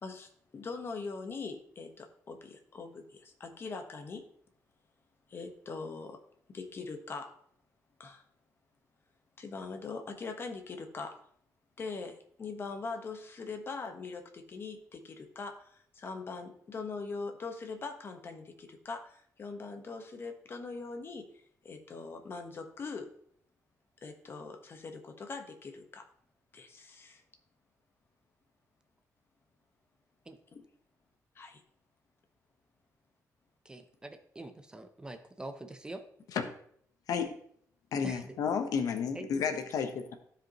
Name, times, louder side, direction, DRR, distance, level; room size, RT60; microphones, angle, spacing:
voice 1, 0.0-4.2 5.3-6.2 6.5-7.3 8.0-8.2 9.4-11.2 11.8-21.3 21.6-23.1 24.0-26.1 26.5-27.2 30.5-30.6 31.3-31.6, left 4 dB, 40° left, 5 dB, 1.2 m, -42 dB
voice 2, 33.6-36.0 38.0-38.4 39.1-39.3, right 2 dB, 15° right, 7 dB, 0.6 m, -44 dB
voice 3, 37.9-40.1, left 6 dB, 80° left, 7 dB, 1.0 m, -31 dB
14.5 x 5.1 x 3.0 m, 0.65 s
cardioid pair, 150°, 6 cm